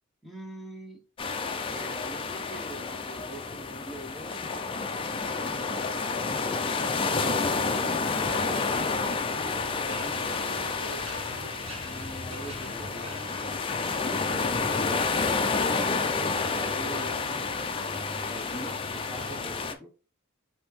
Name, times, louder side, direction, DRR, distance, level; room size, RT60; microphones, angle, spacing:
voice 1, 0.2-1.0 1.4-4.5 5.4-6.0 6.5-8.1 9.3-10.8 11.8-13.1 14.5-15.1 16.2-17.9 18.3-19.9, right 1 dB, ahead, 1 dB, 0.9 m, -43 dB
sound 1, 1.2-19.7, left 4 dB, 25° left, 0.4 m, -30 dB
sound 2, 8.0-19.5, equal, 30° right, 1.2 m, -44 dB
5.3 x 2.8 x 3.1 m, 0.35 s
head